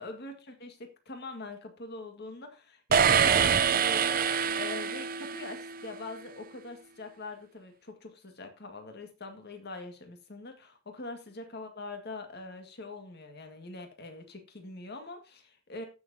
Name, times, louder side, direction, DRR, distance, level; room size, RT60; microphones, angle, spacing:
voice 1, 0.0-15.8, left 2 dB, 50° left, 5 dB, 1.9 m, -43 dB
sound 1, 2.9-5.7, right 7 dB, 45° right, 0.5 m, -25 dB
14.5 x 6.8 x 2.8 m, 0.31 s
head